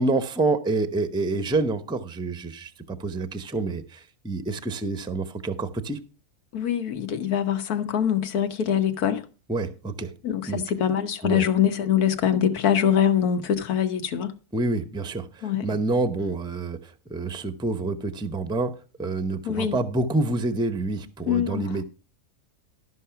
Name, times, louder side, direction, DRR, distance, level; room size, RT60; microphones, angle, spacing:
voice 1, 0.0-6.0 9.5-10.1 10.5-10.6 11.2-11.4 14.5-18.7 19.0-21.8, right 2 dB, 5° right, 0.5 m, -27 dB
voice 2, 6.5-9.2 10.2-14.3 15.4-15.7 19.4-19.8 21.3-21.8, left 9 dB, 85° left, 1.5 m, -24 dB
13.0 x 5.8 x 5.7 m
omnidirectional pair, 1.6 m